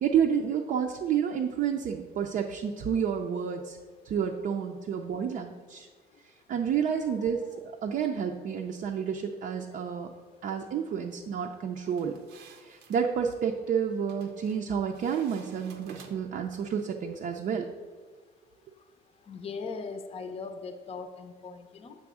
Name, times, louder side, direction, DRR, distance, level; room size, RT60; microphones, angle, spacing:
voice 1, 0.0-3.8 4.0-5.9 6.5-10.1 10.4-12.1 12.6-17.6, right 7 dB, 55° right, 2 dB, 0.5 m, -30 dB
voice 2, 6.9-7.3 19.3-22.0, left 4 dB, 35° left, 7 dB, 0.6 m, -40 dB
sound 1, 11.9-13.0 14.1-14.6 14.9-16.4, right 6 dB, 85° right, 0.8 m, -50 dB
6.8 x 3.6 x 6.2 m, 1.4 s
cardioid pair, 110°, 17 cm